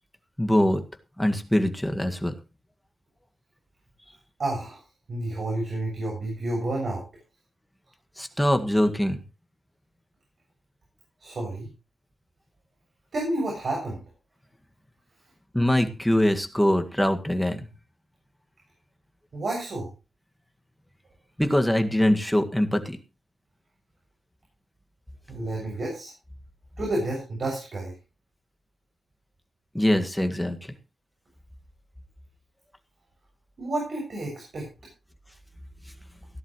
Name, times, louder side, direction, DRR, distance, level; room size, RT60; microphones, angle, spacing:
voice 1, 0.4-0.8 1.2-2.3 8.2-9.2 15.5-17.7 21.4-23.0 29.7-30.6, left 1 dB, 5° left, 6 dB, 1.8 m, -23 dB
voice 2, 4.4-4.8 5.1-7.0 11.2-11.7 13.1-14.0 19.3-19.9 25.3-26.1 26.8-27.9 33.6-34.7, right 2 dB, 55° right, 0 dB, 6.9 m, -30 dB
17.0 x 11.5 x 3.1 m, 0.30 s
wide cardioid pair, 110°, 0 cm